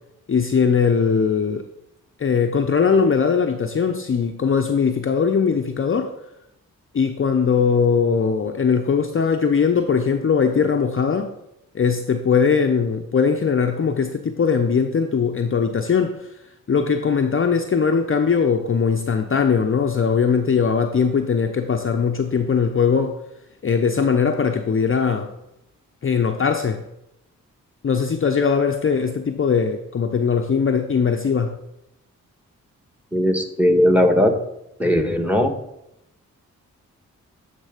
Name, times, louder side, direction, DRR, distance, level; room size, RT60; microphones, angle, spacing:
voice 1, 0.3-1.6 2.2-6.1 6.9-11.3 11.7-16.3 16.7-23.2 23.6-25.3 26.0-26.8 27.8-31.6, left 6 dB, 35° left, 4 dB, 0.6 m, -20 dB
voice 2, 33.1-34.3 34.8-35.5, equal, 5° right, 6 dB, 1.3 m, -18 dB
9.1 x 3.4 x 5.0 m, 0.83 s
supercardioid pair, 40°, 35 cm